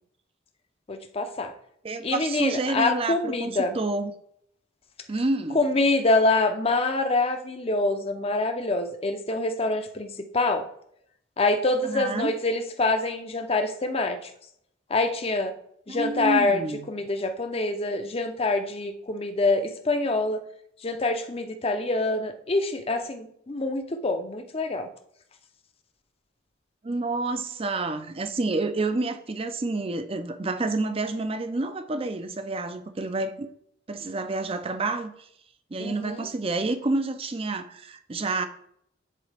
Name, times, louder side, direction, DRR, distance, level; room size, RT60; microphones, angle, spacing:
voice 1, 0.9-1.5 2.0-3.8 5.5-10.6 11.4-14.3 14.9-15.5 15.9-16.6 16.9-20.4 20.8-24.9 35.8-36.3, left 2 dB, 30° left, 7 dB, 0.6 m, -25 dB
voice 2, 1.8-4.1 5.1-5.6 11.8-12.3 15.9-16.9 26.8-33.5 33.9-35.3 35.7-38.5, right 2 dB, 30° right, 9 dB, 0.5 m, -29 dB
9.5 x 4.0 x 3.4 m, 0.70 s
head